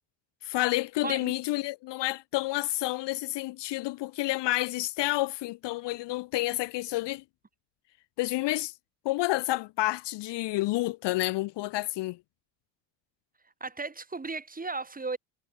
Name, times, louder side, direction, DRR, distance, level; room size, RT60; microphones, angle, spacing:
voice 1, 0.4-7.2 8.2-8.7 9.0-12.2, left 18 dB, 60° left, 0.6 m, -29 dB
voice 2, 1.0-1.3 13.6-15.2, right 3 dB, 15° right, 2.2 m, -35 dB
supercardioid pair, 85°, 50 cm